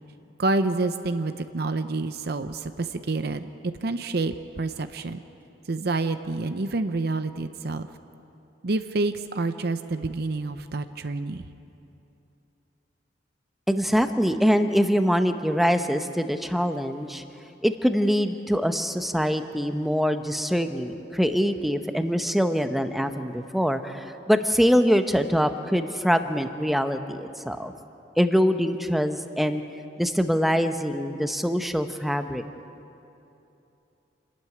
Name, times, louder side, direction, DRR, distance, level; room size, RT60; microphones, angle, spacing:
voice 1, 0.4-5.2 5.7-7.9 8.6-11.5, right 2 dB, 60° right, 10 dB, 0.7 m, -28 dB
voice 2, 13.7-17.2 17.6-27.7 28.2-29.6 30.0-32.4, equal, ahead, 8 dB, 0.8 m, -24 dB
27.5 x 12.5 x 9.5 m, 2.9 s
head